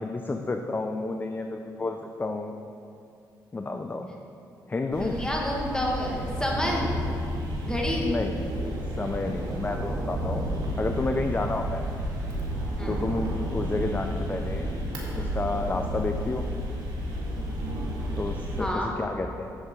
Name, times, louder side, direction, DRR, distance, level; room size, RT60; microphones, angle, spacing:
voice 1, 0.0-2.5 3.5-4.1 4.7-5.2 8.0-8.4 9.0-11.8 12.9-14.7 15.1-16.5 18.2-19.6, left 3 dB, 25° left, 5 dB, 0.5 m, -30 dB
sound 1, 4.9-18.6, equal, 75° right, 1.7 m, -31 dB
voice 2, 5.0-6.9 7.6-8.0 12.8-13.0 18.6-18.9, left 1 dB, 10° left, -2 dB, 1.7 m, -29 dB
7.8 x 7.2 x 3.8 m, 2.5 s
supercardioid pair, 60°, 8 cm